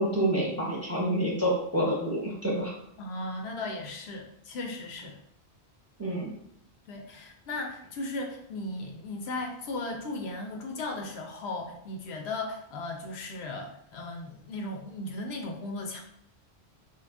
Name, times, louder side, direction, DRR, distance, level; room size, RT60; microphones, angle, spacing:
voice 1, 0.0-2.7 6.0-6.3, right 1 dB, 15° right, -5 dB, 0.8 m, -28 dB
voice 2, 3.0-5.2 6.9-16.0, left 2 dB, 75° left, 2 dB, 0.8 m, -36 dB
3.1 x 2.3 x 3.4 m, 0.74 s
omnidirectional pair, 1.1 m